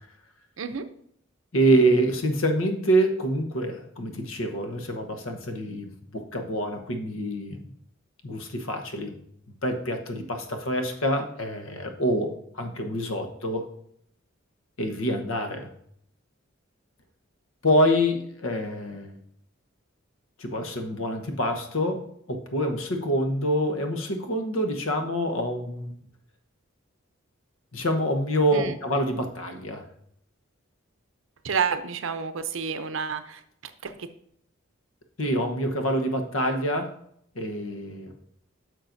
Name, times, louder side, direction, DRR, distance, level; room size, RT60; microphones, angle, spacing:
voice 1, 1.5-7.7 8.2-9.1 9.6-13.7 14.8-15.7 17.6-19.2 20.4-25.9 27.7-29.8 35.2-36.9 37.3-38.1, right 1 dB, 85° left, 5 dB, 1.1 m, -26 dB
voice 2, 31.4-33.4 33.8-34.1, right 6 dB, 70° right, 11 dB, 0.6 m, -29 dB
10.5 x 6.5 x 2.6 m, 0.69 s
head